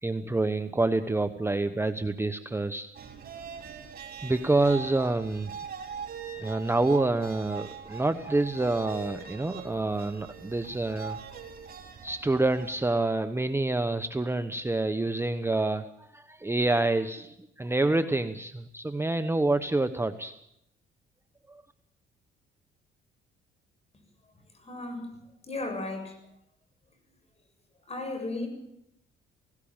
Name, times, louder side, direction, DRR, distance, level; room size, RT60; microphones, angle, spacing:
voice 1, 0.0-2.9 4.2-5.5 6.4-11.4 12.0-20.3 21.5-21.6, right 2 dB, 10° right, 9 dB, 1.1 m, -27 dB
sound 1, 3.0-12.8, right 6 dB, 50° right, 3.9 m, -42 dB
voice 2, 24.6-25.1 25.5-26.2 27.9-28.5, left 2 dB, 30° left, 6 dB, 7.3 m, -34 dB
18.0 x 17.0 x 8.9 m, 0.76 s
cardioid pair, 90°, 20 cm